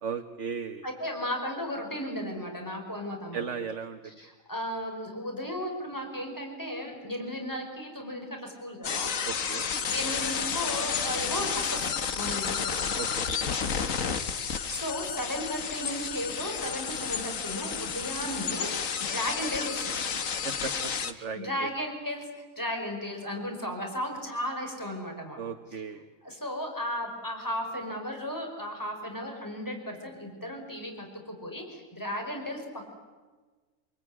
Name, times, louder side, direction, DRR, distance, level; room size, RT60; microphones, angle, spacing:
voice 1, 0.0-0.9 3.3-4.2 9.2-9.7 13.0-13.9 20.4-20.7 21.0-21.7 25.4-26.0, right 6 dB, 60° right, 5 dB, 1.6 m, -36 dB
voice 2, 0.8-3.5 4.2-9.5 9.8-12.9 14.4-20.0 21.2-22.2 22.6-25.4 26.2-32.8, equal, 15° left, 2 dB, 5.4 m, -35 dB
sound 1, 8.8-21.1, left 6 dB, 70° left, 1.6 m, -31 dB
26.0 x 23.0 x 9.9 m, 1.3 s
omnidirectional pair, 1.4 m